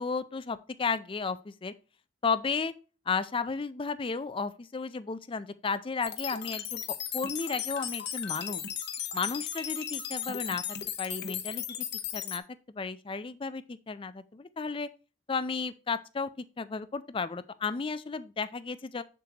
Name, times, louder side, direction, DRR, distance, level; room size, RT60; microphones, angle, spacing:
voice 1, 0.0-1.7 2.2-2.7 3.1-6.8 7.1-8.6 9.1-10.6 11.0-11.8 12.1-14.9 15.3-19.0, left 4 dB, 25° left, 0.4 m, -33 dB
sound 1, 6.0-12.4, left 10 dB, 55° left, 0.9 m, -36 dB
7.3 x 7.1 x 2.9 m
head